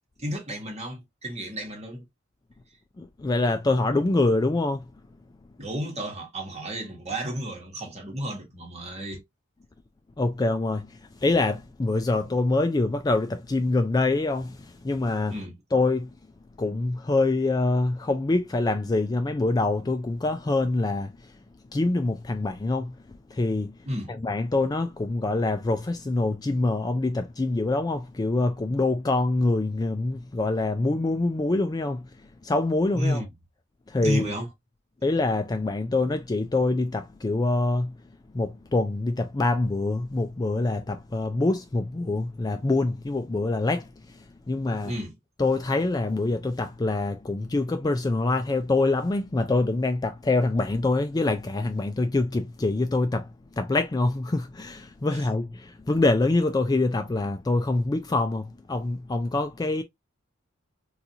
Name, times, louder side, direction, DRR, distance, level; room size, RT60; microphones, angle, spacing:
voice 1, 0.2-2.1 5.6-9.2 15.3-15.6 23.8-24.1 32.9-33.3 34.0-34.5 44.8-45.2 55.1-55.2, equal, 30° right, 1.2 m, -32 dB
voice 2, 3.0-4.8 10.2-10.9 11.2-15.3 15.7-16.1 16.6-21.1 21.7-22.9 23.3-23.7 24.2-32.0 32.4-33.2 33.9-34.3 35.0-37.9 38.3-43.9 44.5-44.9 45.4-53.3 53.6-59.8, left 2 dB, 20° left, 0.3 m, -25 dB
4.1 x 2.4 x 2.6 m
head